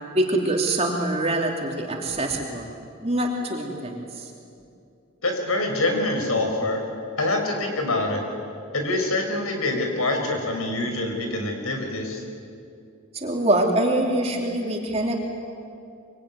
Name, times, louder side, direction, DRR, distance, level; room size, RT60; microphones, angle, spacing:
voice 1, 0.1-2.7 3.0-4.3 13.1-15.2, right 1 dB, 30° right, 0 dB, 2.8 m, -24 dB
voice 2, 5.2-6.8 7.2-8.2 8.7-12.2, left 2 dB, 85° left, 4 dB, 5.2 m, -25 dB
24.0 x 23.5 x 9.6 m, 2.5 s
head